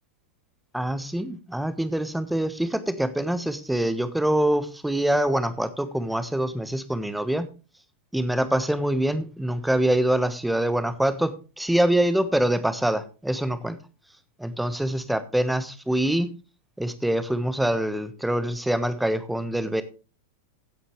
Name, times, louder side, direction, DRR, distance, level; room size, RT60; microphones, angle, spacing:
voice 1, 0.7-7.5 8.1-13.8 14.4-16.3 16.8-19.8, right 1 dB, 5° right, 12 dB, 1.2 m, -25 dB
16.0 x 8.6 x 3.2 m, 0.34 s
figure-of-eight pair, 90°, 0 cm